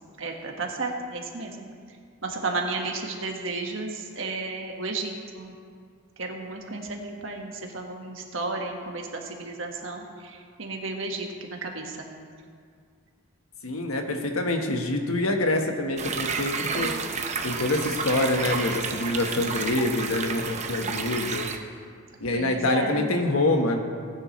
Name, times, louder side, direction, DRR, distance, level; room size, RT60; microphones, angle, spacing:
voice 1, 0.2-1.7 2.2-5.5 6.2-12.1 22.3-23.1, right 3 dB, 65° right, 2 dB, 1.5 m, -33 dB
voice 2, 13.6-17.0 17.4-21.5 22.2-23.8, left 2 dB, 85° left, 4 dB, 1.3 m, -26 dB
sound 1, 16.0-21.6, right 5 dB, 35° right, 0.7 m, -31 dB
19.0 x 9.8 x 3.2 m, 2.1 s
head